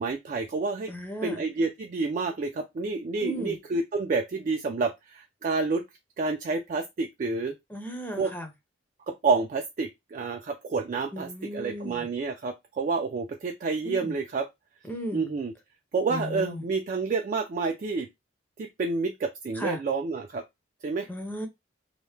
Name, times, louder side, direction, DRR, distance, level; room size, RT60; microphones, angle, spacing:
voice 1, 0.0-0.9 1.2-5.8 6.2-7.5 8.2-8.3 9.1-14.5 15.1-15.5 15.9-18.1 18.6-20.4 20.8-21.1, right 4 dB, 40° right, 0.3 m, -29 dB
voice 2, 0.9-1.4 3.2-3.6 7.7-8.5 11.1-12.1 13.8-14.1 14.8-15.2 16.1-16.7 19.5-19.8 21.1-21.5, equal, 10° left, 0.5 m, -35 dB
2.8 x 2.1 x 3.3 m
head